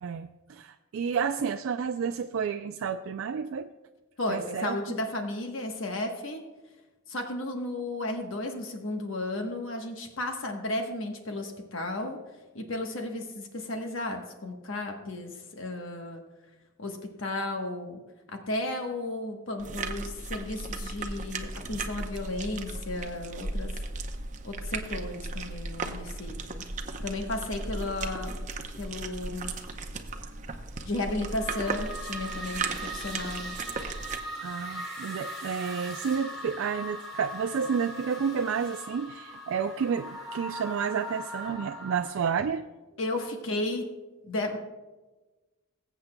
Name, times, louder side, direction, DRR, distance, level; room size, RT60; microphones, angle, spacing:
voice 1, 0.0-3.7 4.3-4.8 34.4-42.7, right 6 dB, 70° right, 7 dB, 0.3 m, -30 dB
voice 2, 4.2-6.4 7.1-12.2 12.5-16.2 16.8-18.0 18.5-23.7 24.4-26.6 27.0-28.4 28.8-29.5 30.8-33.6 43.0-43.9 44.2-44.6, left 2 dB, 70° left, 3 dB, 1.1 m, -34 dB
sound 1, 19.6-34.2, right 3 dB, 35° right, 0.7 m, -36 dB
sound 2, 31.3-42.1, equal, ahead, 2.7 m, -40 dB
20.5 x 8.1 x 2.2 m, 1.2 s
head